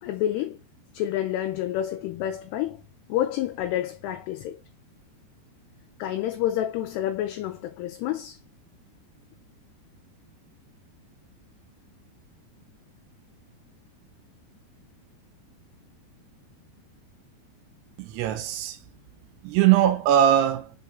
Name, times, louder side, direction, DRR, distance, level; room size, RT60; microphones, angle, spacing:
voice 1, 0.0-0.6 0.9-2.8 3.1-4.6 6.0-8.4, left 12 dB, 80° left, 2.5 m, -28 dB
voice 2, 18.0-18.8 19.4-20.7, right 11 dB, 85° right, 2.4 m, -21 dB
5.6 x 4.7 x 3.7 m
omnidirectional pair, 5.1 m